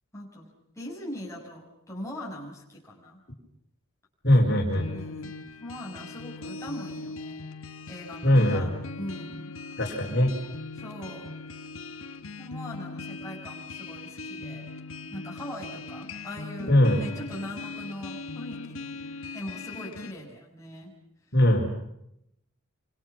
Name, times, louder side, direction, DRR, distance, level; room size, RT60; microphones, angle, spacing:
voice 1, 0.1-3.2 4.9-7.4 7.9-8.7 9.0-9.5 10.8-11.4 12.4-14.7 15.1-19.0 19.3-20.9, left 1 dB, 15° left, -3 dB, 7.2 m, -41 dB
voice 2, 4.2-4.9 8.2-8.7 9.8-10.4 16.7-17.0 21.3-21.7, left 1 dB, 50° left, 0 dB, 4.9 m, -21 dB
sound 1, 4.7-20.1, left 3 dB, 65° left, 1.7 m, -40 dB
28.5 x 26.0 x 6.0 m, 0.79 s
head